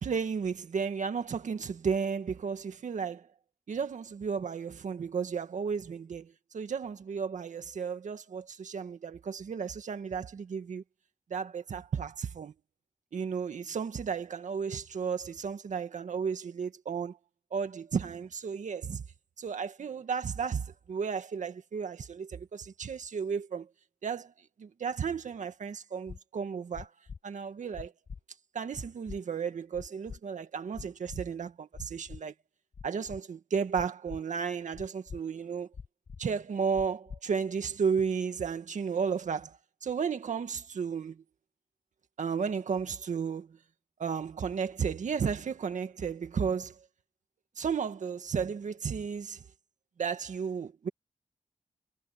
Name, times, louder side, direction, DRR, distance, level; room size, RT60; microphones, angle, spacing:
voice 1, 0.0-3.3 3.7-10.8 11.3-12.5 13.1-17.2 17.5-19.0 19.4-23.7 24.0-24.3 24.6-26.9 27.2-27.9 28.5-32.3 32.8-35.7 36.2-39.6 39.8-41.2 42.2-43.6 44.0-46.7 47.6-49.4 50.0-50.9, right 6 dB, 80° right, 2.0 m, -33 dB
sound 1, 26.1-26.2 26.7-27.2 27.7-28.2 28.7-29.2 29.7-30.2 30.7-31.2 31.7-32.2 32.7-33.2 33.7-34.2 34.7-35.2 35.7-36.2 36.7-37.2, left 5 dB, 70° left, 7.4 m, -43 dB
cardioid pair, 75°, 12 cm